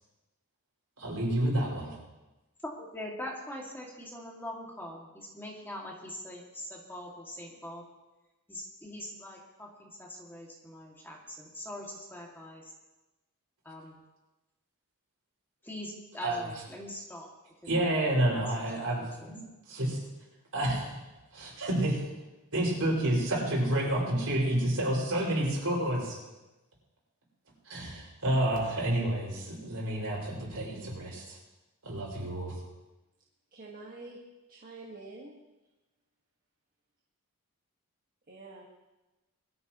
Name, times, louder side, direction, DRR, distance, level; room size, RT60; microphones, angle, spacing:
voice 1, 1.0-2.0 16.2-16.5 17.7-20.0 20.5-21.0 21.3-22.0 22.5-26.2 27.6-31.4 31.8-32.6, right 1 dB, 70° right, -3 dB, 6.0 m, -29 dB
voice 2, 2.8-7.8 8.5-12.7 13.6-14.0 15.6-17.3 18.3-19.3, left 1 dB, 10° left, -2 dB, 2.4 m, -43 dB
voice 3, 33.5-35.4 38.3-38.6, right 2 dB, 40° right, -3 dB, 1.8 m, -47 dB
21.5 x 14.0 x 3.1 m, 1.1 s
head